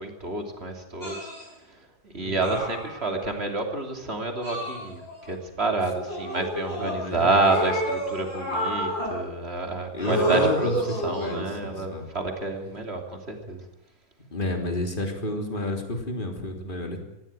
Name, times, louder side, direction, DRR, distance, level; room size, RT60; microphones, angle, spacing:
voice 1, 0.0-13.6, right 3 dB, 30° right, 4 dB, 3.3 m, -29 dB
sound 1, 1.0-1.4 2.4-3.3 4.4-5.3 6.1-7.0 7.4-9.2 10.0-11.5 12.6-12.8, equal, 65° left, 8.1 m, -29 dB
voice 2, 2.2-2.6 6.8-7.5 9.9-12.0 14.3-17.0, left 1 dB, 25° left, 4 dB, 3.4 m, -31 dB
19.5 x 15.5 x 9.0 m, 0.92 s
omnidirectional pair, 2.2 m